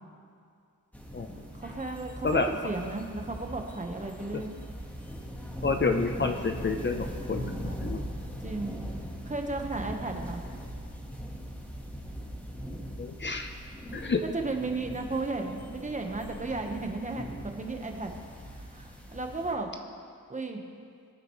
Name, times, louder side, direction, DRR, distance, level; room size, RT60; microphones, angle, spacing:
sound 1, 0.9-19.5, equal, 5° left, 1.5 m, -40 dB
voice 1, 1.3-4.5 8.4-8.8 9.3-10.4 14.2-18.1 18.5-19.7 20.3-20.6, right 3 dB, 20° right, 3 dB, 1.2 m, -34 dB
voice 2, 5.6-8.0 13.0-13.5 13.9-14.2, left 4 dB, 35° left, 5 dB, 0.8 m, -29 dB
25.0 x 9.0 x 3.2 m, 2.3 s
wide cardioid pair, 125°, 34 cm